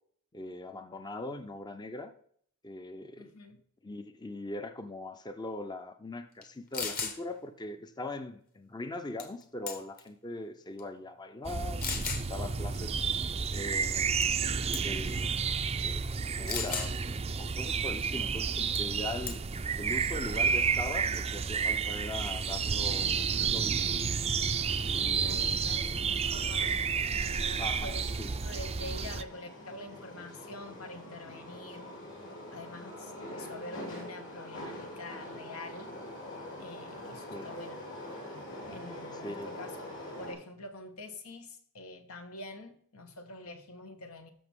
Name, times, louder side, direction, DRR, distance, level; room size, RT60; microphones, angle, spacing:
voice 1, 0.3-2.1 2.6-3.3 3.8-13.0 13.5-15.3 15.8-19.4 19.7-24.1 24.8-26.0 26.3-26.6 27.6-28.3 37.3-37.5 39.2-39.5, left 2 dB, 20° left, 0.6 m, -41 dB
voice 2, 3.2-3.6 25.2-26.8 27.1-31.9 32.5-35.9 36.6-37.8 38.7-44.3, left 2 dB, 80° left, 1.4 m, -46 dB
sound 1, 6.4-6.5 6.7-7.2 9.2-9.4 9.7-10.1 10.8-10.9 11.8-12.3 14.2-14.5 14.7-15.0 16.5-16.9 18.8-19.0 19.3-19.6, left 5 dB, 40° left, 1.4 m, -35 dB
sound 2, 11.5-29.2, right 6 dB, 30° right, 0.4 m, -31 dB
sound 3, 21.3-40.3, left 1 dB, 60° left, 3.9 m, -45 dB
14.0 x 5.9 x 3.7 m
head